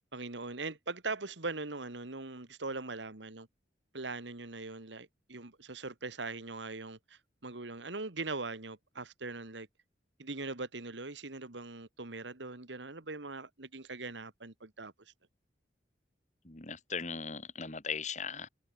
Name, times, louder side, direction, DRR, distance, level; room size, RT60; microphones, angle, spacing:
voice 1, 0.1-3.5 3.9-9.7 10.2-14.9, right 3 dB, 85° right, 1.9 m, -41 dB
voice 2, 16.4-18.5, left 5 dB, 40° left, 2.2 m, -38 dB
head